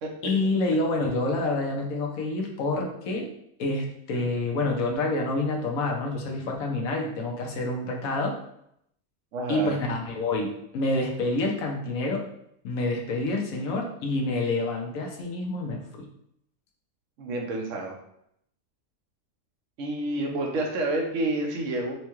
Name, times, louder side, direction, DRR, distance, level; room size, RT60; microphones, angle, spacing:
voice 1, 0.2-3.3 3.6-8.4 9.5-12.3 12.6-16.1, left 2 dB, 75° left, 1 dB, 1.1 m, -28 dB
voice 2, 9.3-9.8 17.2-17.9 19.8-21.9, right 2 dB, 65° right, 1 dB, 1.0 m, -29 dB
4.5 x 2.2 x 3.0 m, 0.74 s
omnidirectional pair, 1.5 m